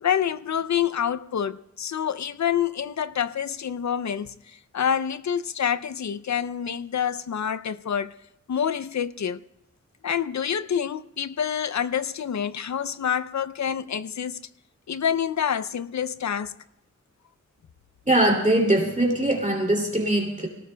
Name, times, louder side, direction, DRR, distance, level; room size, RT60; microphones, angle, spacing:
voice 1, 0.0-8.1 8.5-9.4 10.0-14.4 14.9-16.5, left 8 dB, 65° left, 0.5 m, -27 dB
voice 2, 18.1-20.5, right 1 dB, 25° right, 2.6 m, -21 dB
26.0 x 18.5 x 2.2 m
wide cardioid pair, 100°, 31 cm